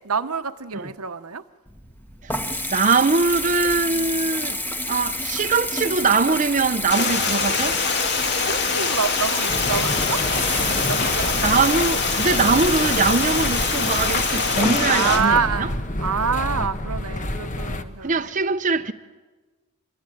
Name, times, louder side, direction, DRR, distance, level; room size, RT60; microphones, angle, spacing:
voice 1, 0.0-1.4 8.4-10.2 10.9-11.6 14.9-15.7 16.0-18.3, right 6 dB, 80° right, 1.1 m, -26 dB
Water tap faucet / Bathtub (filling or washing) / Trickle dribble, 1.7-16.5, left 1 dB, 10° left, 1.5 m, -30 dB
voice 2, 2.7-4.6 4.9-7.8 11.4-15.7 18.0-18.9, right 4 dB, 35° right, 0.8 m, -22 dB
Stream, 6.9-15.2, left 4 dB, 50° left, 2.8 m, -24 dB
sound 1, 9.5-17.8, left 1 dB, 35° left, 1.3 m, -29 dB
26.5 x 23.0 x 9.3 m
head